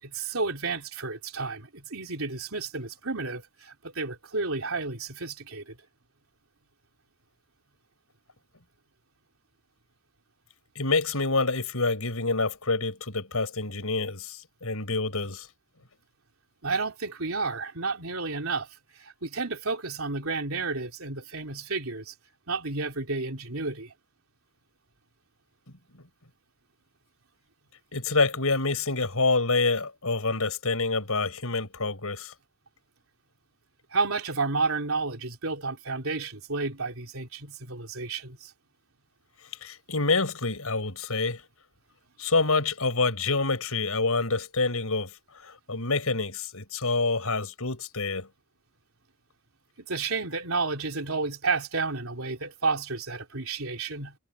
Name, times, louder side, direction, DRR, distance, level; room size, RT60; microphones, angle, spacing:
voice 1, 0.0-5.8 16.6-18.7 18.9-22.1 22.5-23.9 33.9-38.5 49.8-54.2, right 4 dB, 70° right, 3.8 m, -31 dB
voice 2, 10.8-15.5 27.9-32.3 39.6-41.4 42.2-45.1 45.4-48.3, left 3 dB, 75° left, 5.4 m, -27 dB
head